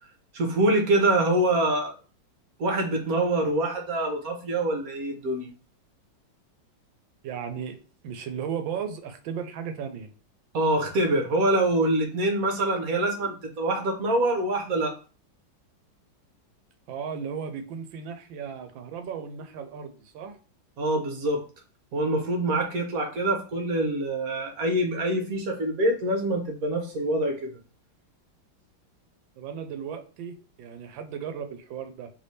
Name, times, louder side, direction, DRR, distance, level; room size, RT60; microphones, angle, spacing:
voice 1, 0.3-1.9 2.6-5.5 10.5-14.9 20.8-21.4 21.9-27.6, right 1 dB, 55° right, 3 dB, 1.3 m, -25 dB
voice 2, 7.2-7.8 8.0-10.1 16.9-20.4 29.4-32.1, right 7 dB, 85° right, 8 dB, 1.4 m, -35 dB
3.3 x 3.3 x 4.1 m, 0.36 s
omnidirectional pair, 2.0 m